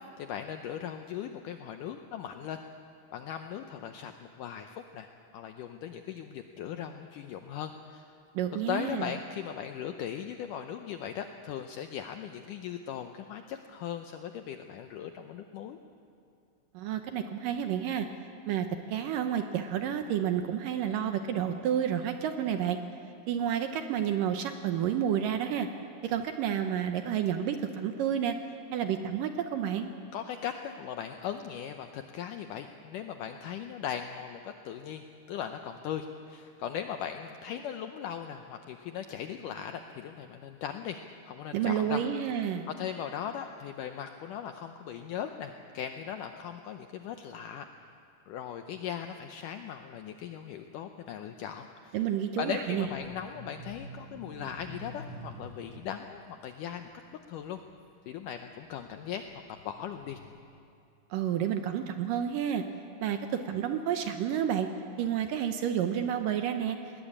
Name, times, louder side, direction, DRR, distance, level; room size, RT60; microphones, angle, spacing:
voice 1, 0.2-2.6 3.1-5.1 5.3-8.2 8.5-15.8 30.1-41.0 41.3-42.0 42.3-47.7 48.3-52.0 52.4-56.9 57.3-57.6 58.1-59.2 59.7-60.2, left 9 dB, 80° left, 6 dB, 1.9 m, -38 dB
voice 2, 8.3-9.1 16.7-18.1 18.5-22.8 23.3-25.7 26.0-28.4 28.7-29.9 41.5-42.7 51.9-52.9 61.1-62.6 63.0-64.7 65.0-66.8, right 9 dB, 75° right, 7 dB, 2.2 m, -30 dB
sound 1, 52.6-58.0 58.5-60.4, equal, 30° left, 2.4 m, -48 dB
20.5 x 19.0 x 8.6 m, 2.6 s
omnidirectional pair, 4.6 m